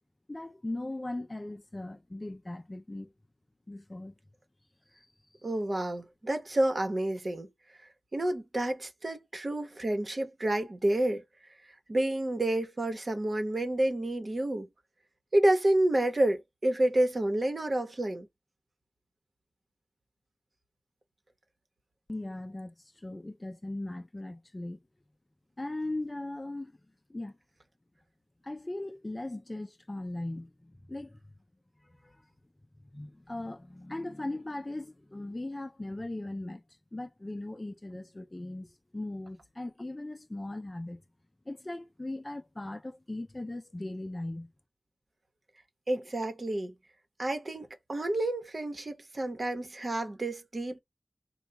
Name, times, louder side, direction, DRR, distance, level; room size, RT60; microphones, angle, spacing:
voice 1, 0.3-3.1 3.7-4.1 4.9-5.1 22.1-24.8 25.6-26.7 27.1-27.3 28.4-31.2 31.9-32.2 32.9-36.6 36.9-41.0 41.5-44.5, left 2 dB, 30° left, 0.5 m, -39 dB
voice 2, 5.4-7.5 8.1-11.2 11.9-14.7 15.3-18.3 45.9-46.7 47.2-50.8, right 1 dB, 50° right, 1.1 m, -29 dB
3.4 x 2.3 x 4.0 m
wide cardioid pair, 70°, 0 cm